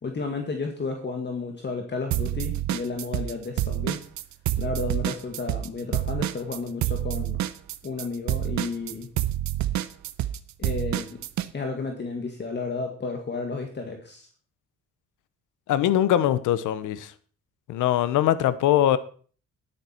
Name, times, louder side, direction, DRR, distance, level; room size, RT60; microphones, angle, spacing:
voice 1, 0.0-4.0 4.6-7.4 7.8-9.1 10.6-11.2 11.5-14.3, left 4 dB, 35° left, 2.0 m, -32 dB
sound 1, 2.1-3.3 3.6-11.5, right 13 dB, 70° right, 0.8 m, -27 dB
voice 2, 15.7-17.1 17.7-19.0, left 12 dB, 85° left, 1.0 m, -22 dB
11.0 x 10.0 x 4.5 m
cardioid pair, 90°, 30 cm